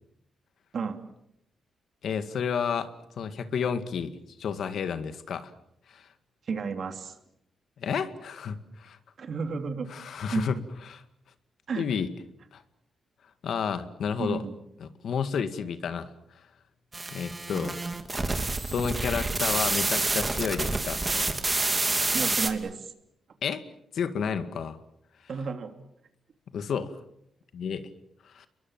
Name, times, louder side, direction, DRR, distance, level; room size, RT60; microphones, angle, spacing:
voice 1, 2.0-5.5 5.9-6.1 7.8-9.0 9.9-10.6 10.9-11.0 11.8-12.1 12.5-12.6 13.4-14.4 14.8-16.1 17.1-17.8 18.7-21.0 23.4-23.7 23.9-24.8 26.5-27.0 27.5-27.9 28.3-28.5, left 7 dB, 70° left, 10 dB, 2.0 m, -31 dB
voice 2, 6.5-7.1 9.2-9.9 10.3-10.5 11.7-11.9 14.2-14.5 22.1-22.9 25.3-25.7, right 5 dB, 55° right, 7 dB, 3.1 m, -32 dB
sound 1, 16.9-22.5, right 2 dB, 20° right, 2.8 m, -28 dB
29.5 x 23.0 x 7.6 m, 0.79 s
cardioid pair, 100°, 0 cm